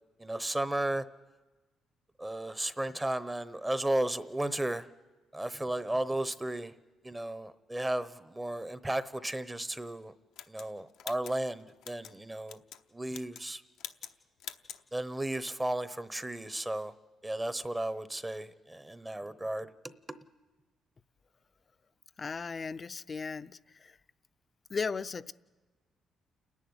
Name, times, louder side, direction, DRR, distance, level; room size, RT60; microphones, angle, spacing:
voice 1, 0.2-1.0 2.2-4.9 5.3-6.7 7.0-10.1 10.5-12.6 12.9-13.6 14.9-16.9 17.2-19.7 20.1-20.2, right 1 dB, 15° right, 0.9 m, -34 dB
sound 1, 10.4-12.1 12.5-12.8 13.1-13.5 13.8-14.1 14.4-14.8, left 10 dB, 85° left, 0.9 m, -45 dB
voice 2, 22.2-24.0 24.7-25.3, left 5 dB, 35° left, 0.6 m, -36 dB
29.0 x 11.0 x 9.6 m
cardioid pair, 90°, 0 cm